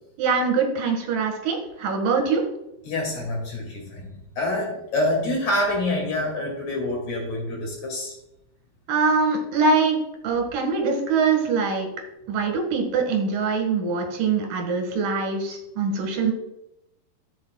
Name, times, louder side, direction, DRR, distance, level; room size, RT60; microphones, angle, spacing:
voice 1, 0.2-2.4 8.9-10.0 10.2-11.9 12.3-16.3, right 4 dB, 60° right, 2 dB, 3.2 m, -23 dB
voice 2, 2.8-4.1 4.4-8.1, left 1 dB, 50° left, -1 dB, 3.5 m, -26 dB
13.0 x 7.8 x 2.4 m, 0.87 s
omnidirectional pair, 4.6 m